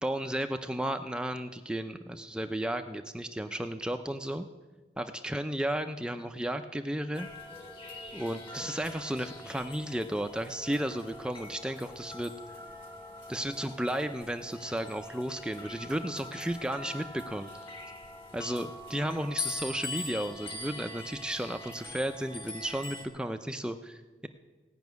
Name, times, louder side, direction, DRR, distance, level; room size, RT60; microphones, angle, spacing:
voice 1, 0.0-4.5 5.0-7.3 8.1-12.3 13.3-17.5 18.3-24.3, right 1 dB, 5° right, 7 dB, 0.5 m, -34 dB
sound 1, 7.1-23.1, left 2 dB, 30° left, 2.0 m, -43 dB
17.5 x 6.0 x 9.3 m, 1.3 s
head